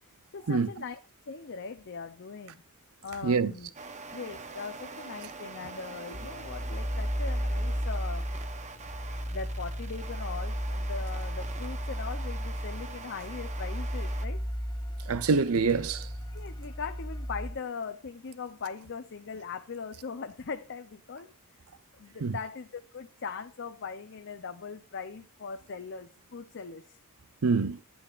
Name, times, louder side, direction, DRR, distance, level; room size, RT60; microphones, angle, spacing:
voice 1, 0.3-1.0 1.3-2.6 3.0-3.7 4.1-8.2 9.3-14.4 15.1-15.2 16.3-21.3 22.0-27.0, left 5 dB, 55° left, 0.6 m, -40 dB
sound 1, 3.7-14.3, right 4 dB, 30° right, 0.9 m, -44 dB
sound 2, 6.1-17.5, equal, 20° left, 0.7 m, -34 dB
voice 2, 15.1-16.1 22.2-22.4 27.4-27.8, right 4 dB, 70° right, 0.6 m, -25 dB
13.0 x 8.7 x 2.5 m
head